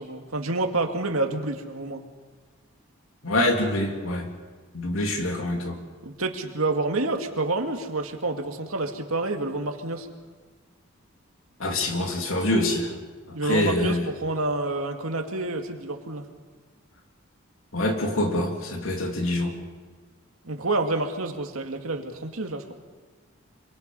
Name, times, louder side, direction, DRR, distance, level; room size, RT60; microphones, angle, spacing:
voice 1, 0.0-2.0 6.0-10.1 13.3-16.3 20.4-22.7, right 2 dB, 80° right, 4 dB, 2.2 m, -28 dB
voice 2, 3.2-4.3 4.7-5.8 11.6-12.9 13.4-14.0 17.7-19.5, left 1 dB, 75° left, 2 dB, 3.3 m, -25 dB
26.5 x 23.5 x 5.6 m, 1.5 s
head